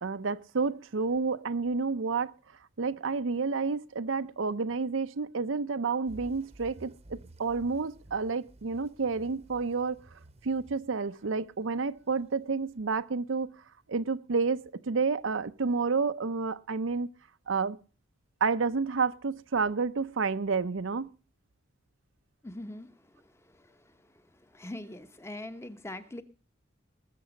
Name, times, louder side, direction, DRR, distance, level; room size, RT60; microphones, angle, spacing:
voice 1, 0.0-2.3 2.8-10.0 10.4-13.5 13.9-17.1 17.5-17.8 18.4-21.1, right 4 dB, 80° right, 0.6 m, -30 dB
sound 1, 6.1-12.8, right 1 dB, 30° right, 0.9 m, -53 dB
voice 2, 22.4-26.2, left 1 dB, 15° left, 0.9 m, -43 dB
20.0 x 7.0 x 5.1 m
head